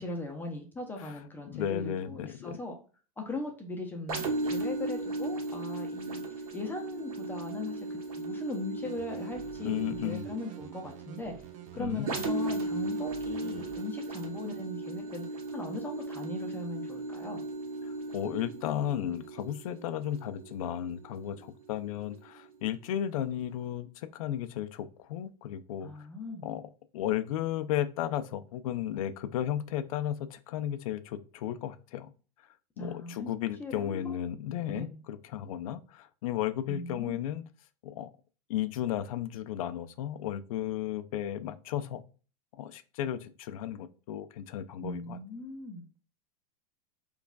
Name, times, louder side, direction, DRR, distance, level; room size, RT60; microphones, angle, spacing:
voice 1, 0.0-2.7 3.2-6.2 6.5-11.3 11.7-15.2 15.5-17.4 25.8-26.5 32.8-33.3 33.6-34.2 34.7-35.0 36.7-37.2 44.8-46.0, left 2 dB, 10° left, 0.6 m, -39 dB
voice 2, 1.5-2.6 9.6-10.2 11.8-12.1 17.8-26.1 26.4-32.1 32.8-37.4 37.8-38.1 38.5-42.0 42.6-45.2, left 11 dB, 70° left, 0.4 m, -34 dB
sound 1, 4.1-21.6 22.2-22.3, right 2 dB, 90° right, 1.0 m, -37 dB
sound 2, 8.8-13.8, right 12 dB, 40° right, 0.5 m, -49 dB
4.5 x 2.4 x 2.3 m
supercardioid pair, 130°, 19 cm